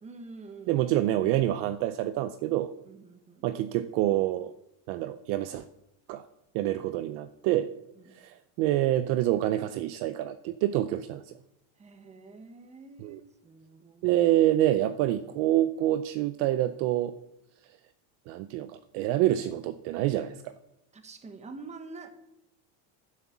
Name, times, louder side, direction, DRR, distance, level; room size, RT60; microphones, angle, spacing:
voice 1, 0.0-0.8 2.9-3.5 6.6-6.7 8.0-8.1 11.8-14.2 20.9-22.1, right 3 dB, 15° right, 8 dB, 1.3 m, -47 dB
voice 2, 0.7-2.7 3.4-4.5 4.9-5.6 6.1-6.3 6.5-7.7 8.1-11.3 13.0-13.2 14.0-17.1 18.3-20.5, right 13 dB, 50° right, 12 dB, 0.6 m, -27 dB
11.5 x 10.0 x 7.2 m, 0.86 s
cardioid pair, 170°, 49 cm